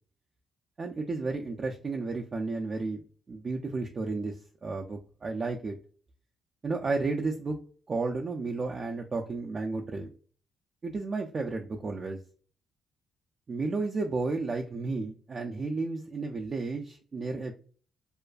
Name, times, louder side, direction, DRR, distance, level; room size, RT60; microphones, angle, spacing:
voice 1, 0.8-3.0 3.3-4.4 4.6-5.8 6.6-7.6 7.9-10.1 10.8-12.2 13.5-17.5, right 3 dB, 40° right, 1 dB, 0.3 m, -32 dB
2.4 x 2.3 x 2.3 m, 0.41 s
cardioid pair, 90°, 0 cm